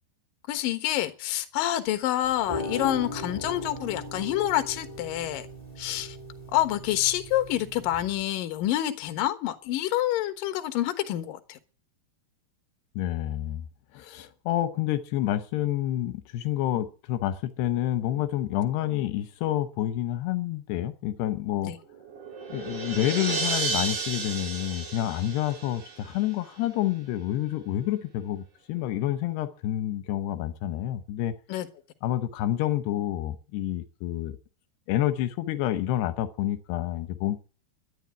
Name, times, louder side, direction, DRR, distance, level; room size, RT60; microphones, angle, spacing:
voice 1, 0.5-5.5 5.8-6.2 6.5-11.6 21.6-21.8 31.5-31.7, left 13 dB, 65° left, 2.7 m, -27 dB
sound 1, 2.2-8.2, left 1 dB, 10° left, 2.5 m, -38 dB
voice 2, 13.0-13.6 13.9-21.7 22.5-31.3 32.0-34.4 34.9-37.4, left 13 dB, 80° left, 2.9 m, -28 dB
sound 2, 21.8-26.4, right 4 dB, 75° right, 6.1 m, -33 dB
12.5 x 10.5 x 9.5 m
omnidirectional pair, 4.8 m